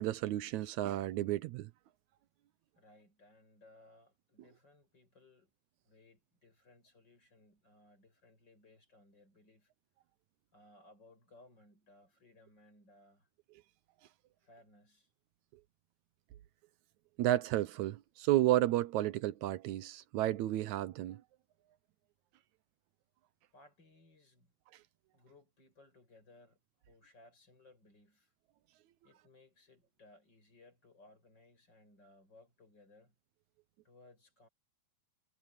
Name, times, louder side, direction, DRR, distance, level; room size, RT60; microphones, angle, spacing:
voice 1, 0.0-1.7 17.2-21.2, right 14 dB, 75° right, 1.7 m, -32 dB
voice 2, 2.7-5.5 5.8-9.7 10.5-13.3 14.4-15.1 23.5-24.5 25.1-28.3 29.0-33.2 33.8-34.5, left 2 dB, 30° left, 8.2 m, -63 dB
omnidirectional pair, 4.1 m